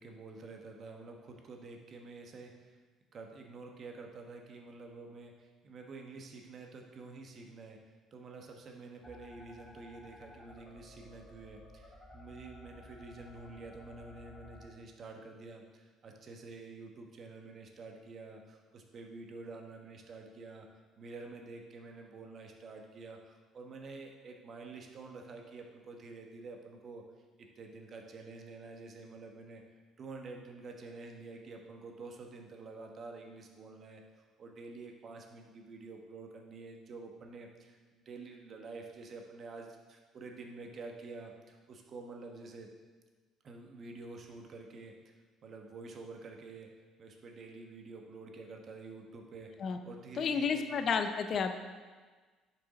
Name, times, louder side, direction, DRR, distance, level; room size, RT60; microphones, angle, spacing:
voice 1, 0.0-2.8 3.1-7.8 8.1-20.7 21.0-27.0 27.6-29.6 30.0-34.0 34.4-42.7 43.4-45.1 45.4-46.7 47.0-49.5 49.8-50.7, right 3 dB, 50° right, 2 dB, 1.1 m, -48 dB
sound 1, 9.0-14.7, left 1 dB, 20° left, 1.6 m, -55 dB
voice 2, 50.2-51.6, left 6 dB, 50° left, 7 dB, 0.6 m, -31 dB
7.5 x 5.1 x 4.1 m, 1.4 s
supercardioid pair, 85°, 0 cm